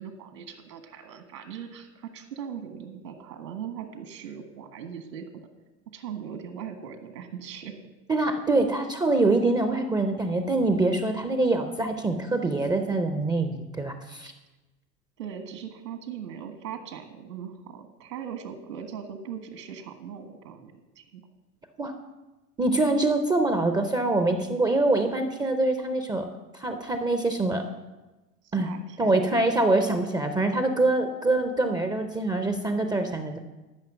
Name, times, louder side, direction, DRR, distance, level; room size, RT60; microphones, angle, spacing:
voice 1, 0.0-5.5 5.9-7.7 15.2-21.2 28.4-29.3, right 8 dB, 75° right, 7 dB, 1.6 m, -39 dB
voice 2, 8.1-14.3 21.8-21.9 22.6-26.3 26.5-27.6 28.5-28.7 29.0-33.4, right 2 dB, 10° right, 7 dB, 0.4 m, -24 dB
13.0 x 5.9 x 7.3 m, 1.1 s
figure-of-eight pair, 85°, 49 cm